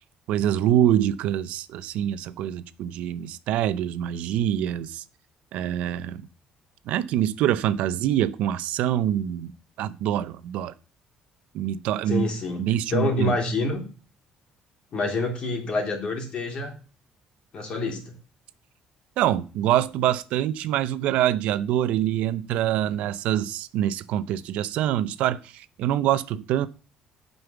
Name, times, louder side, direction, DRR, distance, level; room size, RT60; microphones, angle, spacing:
voice 1, 0.3-5.0 5.5-6.2 6.9-9.5 9.8-10.7 11.5-12.3 12.6-13.3 19.2-26.7, right 11 dB, 80° right, 0.7 m, -25 dB
voice 2, 12.1-13.8 14.9-16.7 17.5-18.1, left 3 dB, 50° left, 3.2 m, -27 dB
7.9 x 5.5 x 6.9 m
cardioid pair, 120°, 2 cm